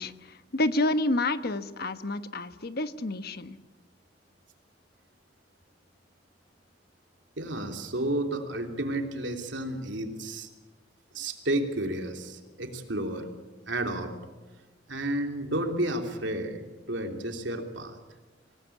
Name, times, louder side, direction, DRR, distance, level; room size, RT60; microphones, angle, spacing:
voice 1, 0.0-3.6, left 2 dB, 55° left, 11 dB, 1.2 m, -29 dB
voice 2, 7.4-10.5 11.1-13.3 13.7-14.2 14.9-18.0, right 1 dB, 80° right, 4 dB, 3.1 m, -31 dB
26.0 x 18.5 x 8.6 m, 1.2 s
head